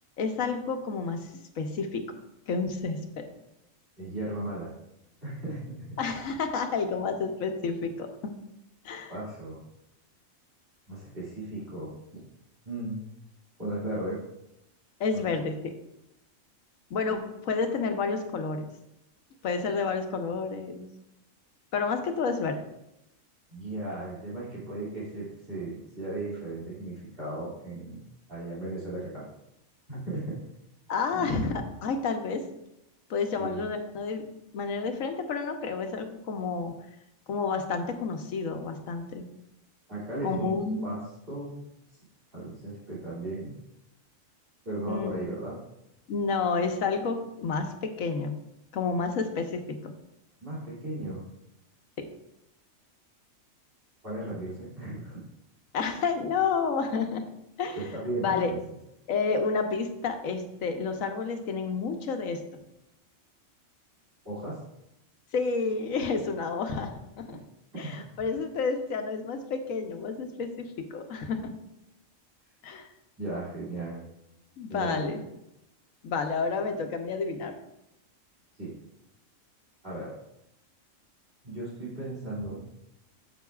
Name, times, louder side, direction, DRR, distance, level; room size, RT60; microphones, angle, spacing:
voice 1, 0.2-1.3 1.6-2.1 2.5-3.2 6.0-8.3 8.8-9.1 15.0-15.7 16.9-18.7 19.4-20.9 21.7-22.6 30.9-32.4 33.1-34.2 34.5-36.7 37.3-39.3 40.2-40.9 44.9-45.3 46.1-48.4 48.7-49.9 52.0-52.1 55.7-57.2 57.6-57.8 58.2-58.5 59.1-62.4 65.3-67.4 67.8-71.5 72.6-72.9 74.6-75.2 76.0-77.6, left 4 dB, 80° left, 6 dB, 1.3 m, -30 dB
voice 2, 4.0-4.7 5.2-6.0 9.1-9.6 10.9-11.9 12.6-13.0 13.6-14.2 23.5-28.0 28.3-29.2 29.9-30.5 31.1-31.4 33.4-33.6 39.9-40.5 40.8-41.0 41.3-41.6 42.3-43.5 44.6-45.5 50.4-51.2 54.0-55.2 57.7-58.6 64.2-64.6 67.7-68.2 73.2-74.0 74.7-75.1 78.6-78.7 79.8-80.1 81.4-82.6, right 2 dB, 45° right, -8 dB, 2.7 m, -36 dB
9.3 x 7.8 x 2.3 m, 0.86 s
omnidirectional pair, 1.4 m